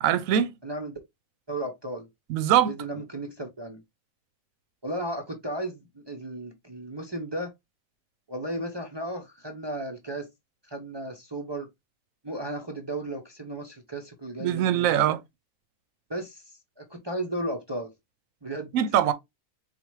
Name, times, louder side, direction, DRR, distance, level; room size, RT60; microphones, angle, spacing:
voice 1, 0.0-0.5 2.3-2.7 14.4-15.2 18.7-19.1, right 10 dB, 65° right, 1.0 m, -22 dB
voice 2, 0.6-1.0 1.5-2.1 2.6-3.8 4.8-7.5 8.3-10.3 10.7-11.7 12.2-15.1 16.1-17.9 18.4-18.7, right 1 dB, 35° right, 0.4 m, -34 dB
4.2 x 2.5 x 4.6 m
omnidirectional pair, 1.6 m